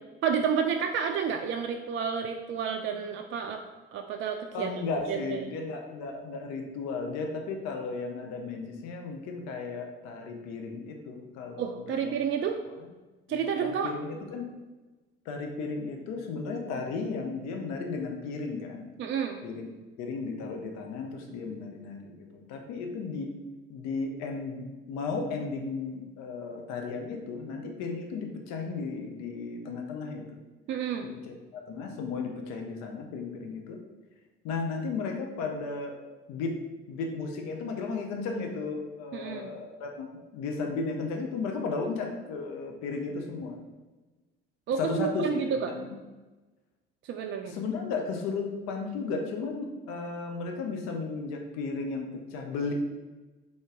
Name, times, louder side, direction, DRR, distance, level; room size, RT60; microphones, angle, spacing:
voice 1, 0.2-3.6 3.9-4.7 5.1-5.5 11.6-12.6 13.3-13.9 19.0-19.4 30.7-31.1 39.1-39.5 44.7-45.7 47.1-47.6, right 7 dB, 40° right, 4 dB, 0.4 m, -30 dB
voice 2, 4.5-12.2 13.3-14.5 15.3-18.9 19.4-19.7 20.0-23.3 23.7-30.4 31.2-33.8 34.4-36.0 36.3-36.5 36.9-40.1 40.3-43.6 44.8-46.0 47.4-52.7, left 4 dB, 60° left, 2 dB, 0.7 m, -34 dB
3.8 x 3.6 x 3.8 m, 1.2 s
figure-of-eight pair, 50°, 30 cm